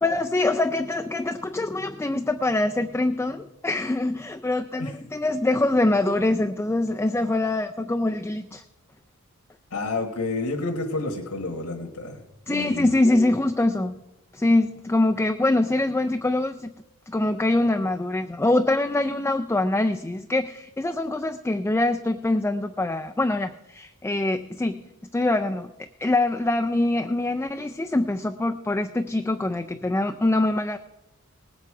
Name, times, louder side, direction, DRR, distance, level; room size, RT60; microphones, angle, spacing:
voice 1, 0.0-8.6 12.5-14.0 14.3-16.7 17.1-25.7 26.0-30.8, left 2 dB, 10° left, 6 dB, 0.3 m, -24 dB
voice 2, 9.7-12.2 12.5-12.9, left 2 dB, 75° left, 1 dB, 1.5 m, -29 dB
19.0 x 8.2 x 4.8 m, 1.0 s
head